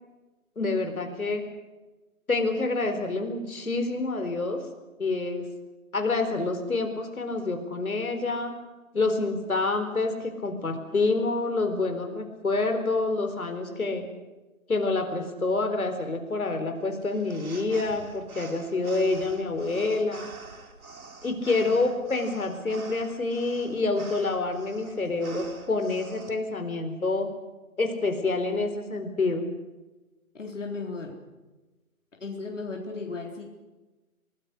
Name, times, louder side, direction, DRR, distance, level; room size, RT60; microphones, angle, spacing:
voice 1, 0.6-1.4 2.3-4.6 5.0-5.5 5.9-8.5 8.9-14.1 14.7-20.3 21.2-27.3 27.8-29.5, left 3 dB, 70° left, 6 dB, 4.2 m, -27 dB
sound 1, 17.0-26.3, right 3 dB, 70° right, 4.1 m, -46 dB
voice 2, 30.3-31.2 32.2-33.4, left 3 dB, 55° left, 1 dB, 4.0 m, -35 dB
29.0 x 19.5 x 6.5 m, 1.1 s
hypercardioid pair, 175°, 43 cm